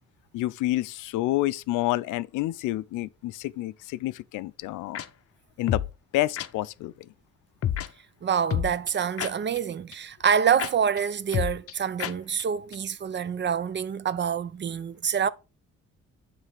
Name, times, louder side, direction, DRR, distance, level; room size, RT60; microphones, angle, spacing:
voice 1, 0.3-5.0 5.6-5.8 6.1-7.1, left 16 dB, 85° left, 0.5 m, -29 dB
sound 1, 4.9-5.1 5.7-5.9 6.4-6.5 7.6-7.9 8.5-9.6 9.9-10.0 10.3-10.4 10.6-10.7 11.0-11.1 11.3-11.7 12.0-12.1 12.4-12.5 12.7-12.8, left 10 dB, 50° left, 0.7 m, -28 dB
voice 2, 8.2-15.3, right 7 dB, 35° right, 0.5 m, -26 dB
9.3 x 3.3 x 4.9 m
cardioid pair, 90°, 30 cm